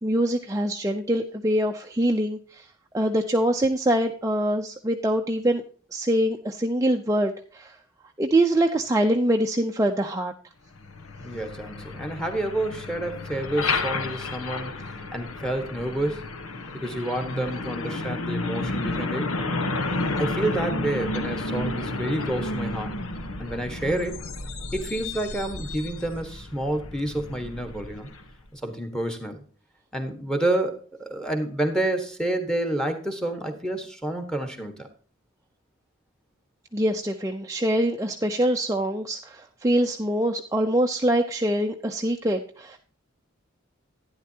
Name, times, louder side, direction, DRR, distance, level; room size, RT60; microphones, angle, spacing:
voice 1, 0.0-2.7 2.9-5.6 5.9-7.8 8.2-10.3 36.7-42.8, right 1 dB, 15° right, 3 dB, 0.6 m, -24 dB
Truck, 10.7-28.4, left 2 dB, 90° left, 1.2 m, -32 dB
voice 2, 11.2-16.2 16.7-19.3 20.2-22.9 23.4-24.2 24.7-28.1 28.5-29.4 29.9-34.9, right 1 dB, 5° left, 7 dB, 1.4 m, -29 dB
11.5 x 10.5 x 2.8 m, 0.43 s
head